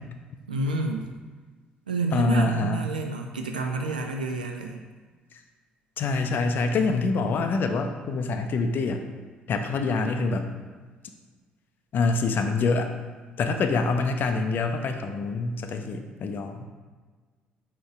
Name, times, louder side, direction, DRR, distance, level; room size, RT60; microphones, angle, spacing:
voice 1, 0.5-1.1 1.9-4.8, right 3 dB, 85° right, 2 dB, 0.3 m, -29 dB
voice 2, 2.1-2.8 6.0-9.0 9.5-10.5 11.9-12.9 13.4-16.6, left 3 dB, 50° left, 6 dB, 0.4 m, -25 dB
4.1 x 3.8 x 2.4 m, 1.4 s
figure-of-eight pair, 50°, 4 cm